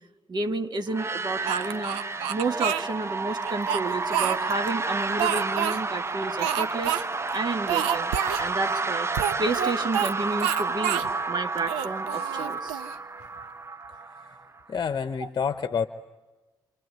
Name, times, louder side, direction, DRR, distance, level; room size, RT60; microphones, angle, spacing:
voice 1, 0.3-2.0 2.3-7.0 7.3-9.1 9.4-12.8 15.2-15.3, right 3 dB, 45° right, 7 dB, 2.1 m, -31 dB
sound 1, 0.9-14.6, right 3 dB, 25° right, 0.9 m, -31 dB
Speech, 1.5-2.9 3.4-4.7 5.2-5.8 6.4-7.0 7.3-7.4 7.7-8.4 9.1-10.1 10.4-11.1 11.6-13.0, right 10 dB, 80° right, 0.9 m, -28 dB
voice 2, 14.7-15.9, left 6 dB, 45° left, 11 dB, 0.9 m, -28 dB
28.0 x 25.5 x 8.2 m, 1.2 s
hypercardioid pair, 45°, 10 cm